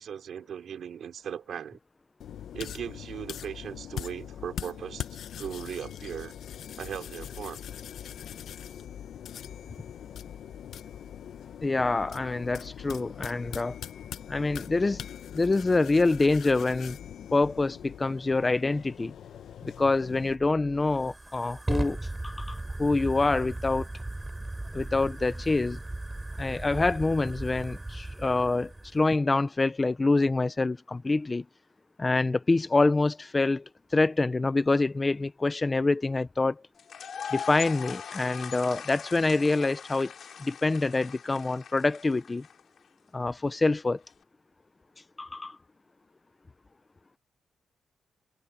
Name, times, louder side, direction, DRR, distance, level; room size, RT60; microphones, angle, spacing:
voice 1, 0.0-1.8 2.5-5.1 5.4-6.4 6.8-7.6, right 8 dB, 65° right, 4.7 m, -38 dB
sound 1, 2.2-20.4, left 9 dB, 75° left, 0.8 m, -42 dB
voice 2, 11.6-13.8 14.3-15.1 15.3-17.0 17.3-19.1 19.6-23.9 24.7-25.8 26.4-31.4 32.0-33.6 33.9-36.6 37.3-40.1 40.4-42.4 43.1-44.0 45.2-45.6, left 3 dB, 20° left, 0.5 m, -26 dB
Fire, 20.2-29.1, right 2 dB, 10° right, 3.4 m, -37 dB
sound 2, 36.8-42.8, left 7 dB, 55° left, 5.5 m, -40 dB
wide cardioid pair, 165°, 0 cm